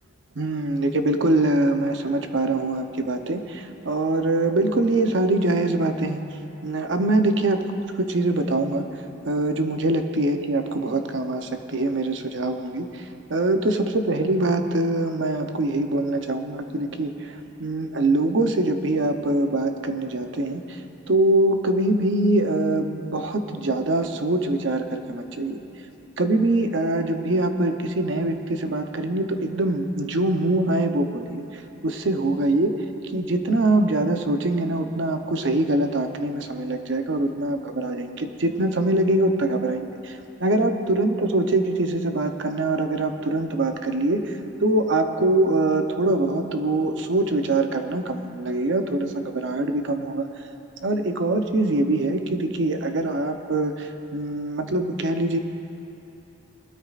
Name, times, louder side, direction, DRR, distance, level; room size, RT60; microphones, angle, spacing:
voice 1, 0.4-6.2 6.6-7.6 8.0-20.8 21.1-25.6 26.2-32.7 33.1-44.3 44.6-50.3 50.8-55.4, right 2 dB, 70° right, 6 dB, 0.8 m, -23 dB
20.0 x 13.0 x 2.5 m, 2.8 s
head